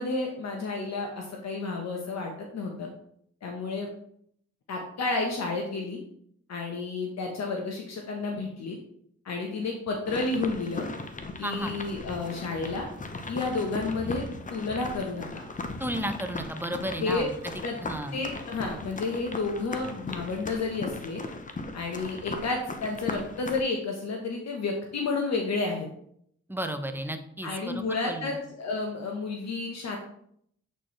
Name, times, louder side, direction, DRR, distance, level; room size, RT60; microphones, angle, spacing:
voice 1, 0.0-2.9 3.4-3.9 4.7-6.0 6.5-8.8 9.2-10.9 11.4-12.9 13.3-14.2 14.5-15.2 17.0-17.2 17.6-17.8 18.1-21.2 21.7-25.9 27.4-30.0, left 3 dB, 65° left, 1 dB, 1.1 m, -31 dB
sound 1, 10.0-23.6, left 3 dB, 25° left, 0.8 m, -38 dB
voice 2, 11.4-11.7 15.8-17.5 17.8-18.2 26.5-28.3, right 1 dB, 5° right, 7 dB, 0.8 m, -33 dB
7.9 x 4.2 x 3.2 m, 0.69 s
supercardioid pair, 60°, 30 cm